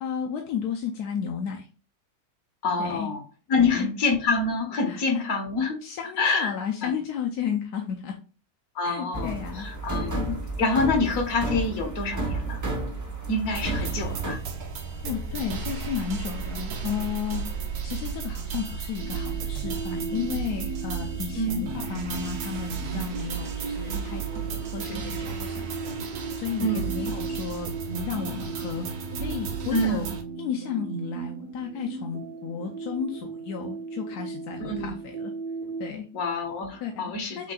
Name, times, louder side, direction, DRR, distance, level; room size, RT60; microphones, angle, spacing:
voice 1, 0.0-1.7 2.8-3.1 3.6-3.9 4.9-5.2 5.8-8.2 8.8-9.7 10.0-10.4 13.6-13.9 15.0-17.5 17.8-30.1 30.4-35.3 35.8-36.1 36.8-36.9 37.4-37.5, left 7 dB, 85° left, 2 dB, 1.2 m, -33 dB
voice 2, 2.6-3.2 3.5-5.8 6.2-6.5 6.8-6.9 8.7-10.2 10.6-12.6 13.3-14.4 21.3-21.6 24.8-25.0 26.6-26.9 29.7-30.0 34.6-34.9 36.1-37.5, left 3 dB, 65° left, 2 dB, 1.5 m, -26 dB
sound 1, 9.1-14.3, right 2 dB, 15° right, 0.7 m, -31 dB
sound 2, 13.5-30.2, right 6 dB, 80° right, 1.2 m, -34 dB
sound 3, 19.0-35.9, right 4 dB, 55° right, 0.6 m, -36 dB
5.8 x 3.4 x 2.3 m, 0.34 s
omnidirectional pair, 1.6 m